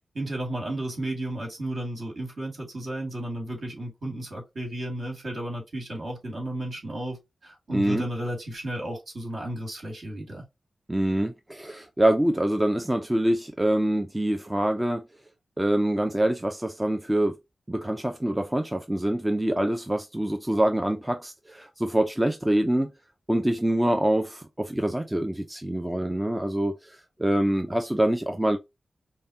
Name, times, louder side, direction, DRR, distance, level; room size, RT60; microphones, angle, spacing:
voice 1, 0.2-10.4, right 1 dB, 50° right, 1.8 m, -33 dB
voice 2, 7.7-8.0 10.9-15.0 15.6-17.4 17.7-22.9 23.3-28.6, right 1 dB, 10° right, 0.4 m, -25 dB
5.4 x 2.1 x 2.6 m
wide cardioid pair, 115°, 0 cm